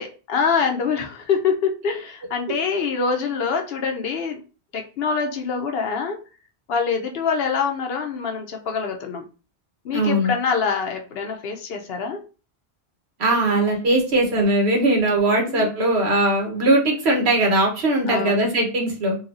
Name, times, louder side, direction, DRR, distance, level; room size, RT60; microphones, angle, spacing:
voice 1, 0.0-4.4 4.7-6.2 6.7-9.2 9.8-12.2 15.5-15.7 18.1-18.4, left 5 dB, 70° left, 3 dB, 0.8 m, -25 dB
voice 2, 9.9-10.3 13.2-19.2, right 1 dB, 80° right, 0 dB, 1.3 m, -20 dB
4.1 x 2.3 x 2.5 m, 0.35 s
omnidirectional pair, 1.1 m